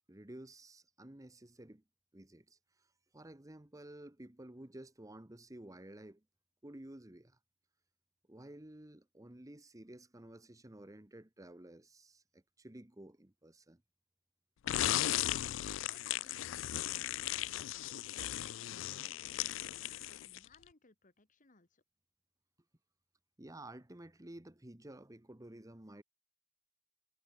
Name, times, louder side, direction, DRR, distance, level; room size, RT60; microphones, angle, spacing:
voice 1, 0.1-1.8 2.1-2.6 3.1-6.2 6.6-7.4 8.3-13.8 23.4-26.0, right 1 dB, 20° right, 1.1 m, -52 dB
sound 1, 14.7-20.6, left 13 dB, 70° left, 0.4 m, -36 dB
voice 2, 15.6-17.1 17.6-21.8, left 3 dB, 40° left, 1.7 m, -65 dB
head